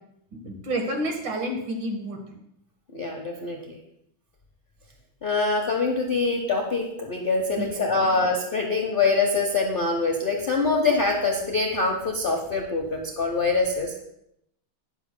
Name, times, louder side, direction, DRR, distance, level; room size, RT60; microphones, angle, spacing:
voice 1, 0.4-2.2 7.6-8.2, right 1 dB, 65° right, 2 dB, 2.2 m, -30 dB
voice 2, 2.9-3.8 5.2-14.0, left 3 dB, 45° left, 1 dB, 0.7 m, -24 dB
12.5 x 9.7 x 2.2 m, 0.78 s
omnidirectional pair, 2.2 m